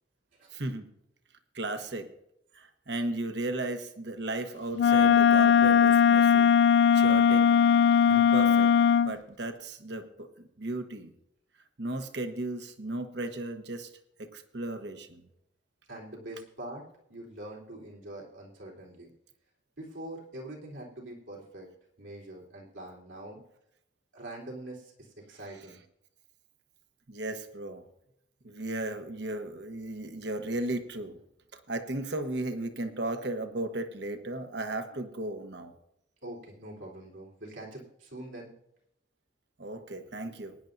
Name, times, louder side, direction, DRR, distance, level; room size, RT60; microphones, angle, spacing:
voice 1, 0.5-0.9 1.5-2.1 2.5-6.5 6.9-7.5 8.1-11.1 11.8-13.9 14.2-15.3 27.1-27.8 28.4-31.2 31.5-35.7 39.6-40.6, right 2 dB, 65° right, 7 dB, 1.2 m, -35 dB
Wind instrument woodwind instrument, 4.8-9.1, left 7 dB, 65° left, 0.3 m, -20 dB
voice 2, 15.9-16.8 17.1-19.1 19.8-21.7 22.0-23.4 24.1-25.8 36.2-38.5, right 1 dB, 85° right, -3 dB, 3.7 m, -44 dB
22.5 x 10.5 x 2.7 m, 0.80 s
head